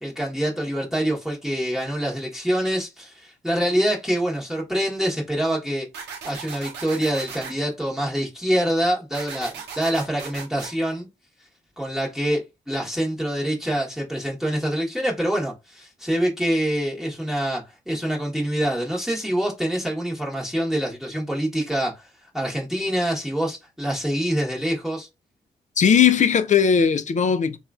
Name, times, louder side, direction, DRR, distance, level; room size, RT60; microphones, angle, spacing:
voice 1, 0.0-5.9 6.2-11.1 11.8-22.1 22.3-25.1, right 1 dB, 5° right, 1.0 m, -25 dB
sound 1, 5.9-7.5 9.1-10.7, right 6 dB, 80° right, 0.6 m, -37 dB
voice 2, 25.8-27.6, left 7 dB, 45° left, 0.4 m, -18 dB
2.9 x 2.3 x 2.4 m
supercardioid pair, 45°, 17 cm